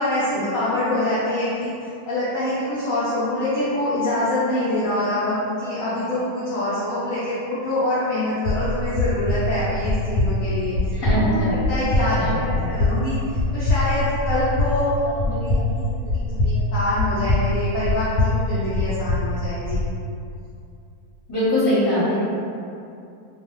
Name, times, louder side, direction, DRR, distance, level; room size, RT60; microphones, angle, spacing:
voice 1, 0.0-10.7 11.1-13.2 13.5-15.7 16.3-19.8, left 1 dB, 65° left, -10 dB, 0.9 m, -25 dB
sound 1, 8.4-19.9, left 2 dB, 85° left, 1.2 m, -23 dB
voice 2, 10.9-11.5 12.1-12.3 12.6-12.7 21.3-22.1, left 1 dB, 20° left, -12 dB, 0.9 m, -21 dB
2.6 x 2.3 x 2.9 m, 2.5 s
omnidirectional pair, 1.7 m